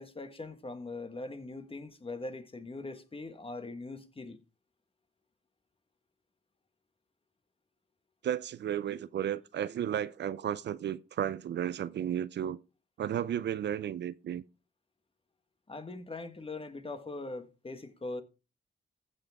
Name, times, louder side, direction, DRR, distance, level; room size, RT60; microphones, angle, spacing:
voice 1, 0.0-4.4 15.7-18.2, left 2 dB, 30° left, 1.5 m, -41 dB
voice 2, 8.2-12.6 13.0-14.4, right 10 dB, 70° right, 0.5 m, -33 dB
15.0 x 6.1 x 3.5 m
cardioid pair, 65°, 19 cm